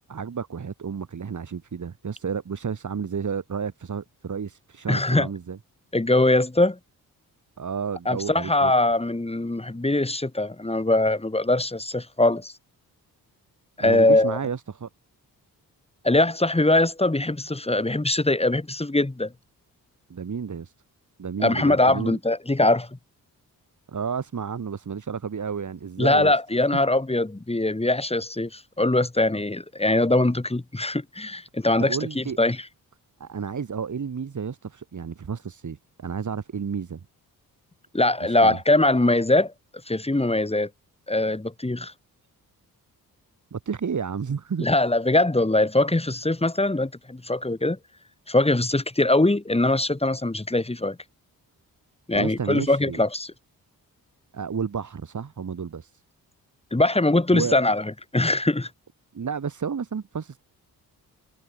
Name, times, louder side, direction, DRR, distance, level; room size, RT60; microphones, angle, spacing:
voice 1, 0.1-5.6 7.6-8.7 13.8-14.9 20.1-20.7 21.2-22.2 23.9-26.3 31.8-32.4 33.2-37.0 38.2-38.6 43.5-44.7 52.1-53.0 54.3-56.0 57.3-57.6 59.1-60.4, right 6 dB, 55° right, 4.6 m, -31 dB
voice 2, 4.9-5.3 5.9-6.8 8.1-12.5 13.8-14.4 16.0-19.3 21.4-23.0 26.0-32.6 37.9-39.5 39.9-40.7 41.1-41.9 44.6-47.8 48.3-51.0 52.1-53.3 56.7-57.8 58.1-58.7, left 2 dB, 15° left, 4.6 m, -22 dB
cardioid pair, 70°, 36 cm